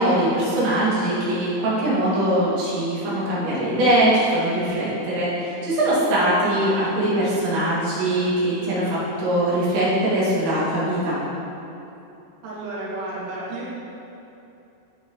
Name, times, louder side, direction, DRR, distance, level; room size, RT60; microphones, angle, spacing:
voice 1, 0.0-11.2, right 1 dB, 90° right, -9 dB, 4.7 m, -22 dB
voice 2, 12.4-13.7, right 2 dB, 50° right, -7 dB, 2.3 m, -32 dB
15.5 x 5.8 x 3.1 m, 2.8 s
omnidirectional pair, 5.0 m